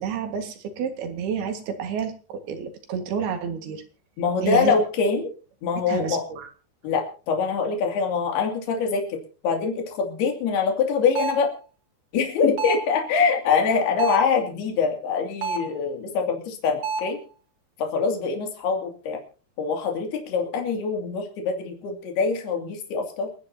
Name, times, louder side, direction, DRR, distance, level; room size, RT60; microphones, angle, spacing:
voice 1, 0.0-3.8 4.4-4.8 5.9-6.5, right 7 dB, 65° right, 6 dB, 3.6 m, -30 dB
voice 2, 4.2-5.3 5.6-6.2 6.8-9.2 9.4-11.5 12.1-17.2 17.8-19.2 19.6-23.3, left 5 dB, 65° left, 2 dB, 4.5 m, -24 dB
sound 1, 11.2-11.5 12.6-13.0 14.0-14.4 15.4-15.8 16.8-17.2, right 4 dB, 40° right, 3.5 m, -29 dB
28.0 x 10.0 x 2.8 m, 0.35 s
omnidirectional pair, 4.9 m